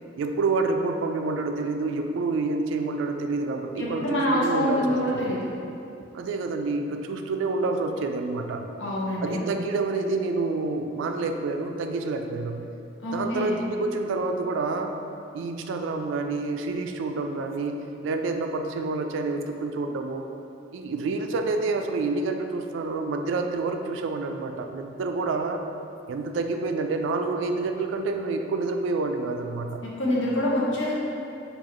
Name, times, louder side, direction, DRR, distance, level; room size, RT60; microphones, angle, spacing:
voice 1, 0.2-5.2 6.1-8.7 9.2-12.7 13.1-14.9 15.3-20.2 20.7-25.6 26.1-29.8, right 3 dB, 80° right, 5 dB, 0.3 m, -28 dB
voice 2, 3.8-5.5 8.8-9.5 13.0-13.6 29.8-30.9, left 1 dB, 75° left, -5 dB, 0.6 m, -26 dB
4.8 x 2.4 x 2.9 m, 2.7 s
head